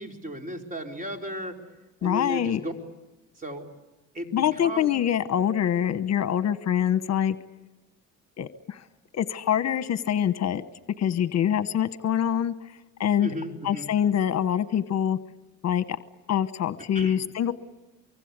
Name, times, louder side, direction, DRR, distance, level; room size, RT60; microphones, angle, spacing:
voice 1, 0.0-1.6 2.0-2.7 3.4-3.7 4.1-4.9 13.2-13.9 16.9-17.2, equal, 25° right, 3 dB, 4.2 m, -35 dB
voice 2, 2.0-2.6 4.3-7.4 8.4-8.8 9.1-10.6 11.0-12.5 13.0-13.3 13.6-15.2 15.6-15.8 16.3-17.5, left 9 dB, 60° left, 13 dB, 1.0 m, -25 dB
24.5 x 24.0 x 8.2 m, 1.1 s
cardioid pair, 90°, 30 cm